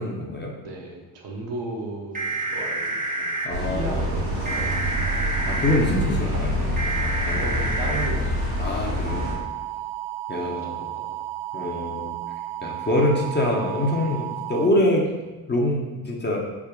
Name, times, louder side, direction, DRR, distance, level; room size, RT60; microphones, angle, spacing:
voice 1, 0.0-0.5 3.4-4.0 5.5-6.7 7.3-7.5 8.6-9.3 10.3-10.8 11.5-12.2 12.6-15.1 15.5-16.4, left 1 dB, 25° left, -1 dB, 0.7 m, -25 dB
voice 2, 0.6-4.8 6.3-6.5 7.0-8.9 10.4-11.2, right 2 dB, 65° right, -1 dB, 0.9 m, -36 dB
sound 1, 2.2-3.5 4.5-5.8 6.8-8.1 9.1-14.7, right 4 dB, 20° right, 0.7 m, -30 dB
sound 2, 3.5-9.3, equal, 85° right, 1.1 m, -26 dB
3.4 x 2.1 x 3.6 m, 1.2 s
hypercardioid pair, 55°, 47 cm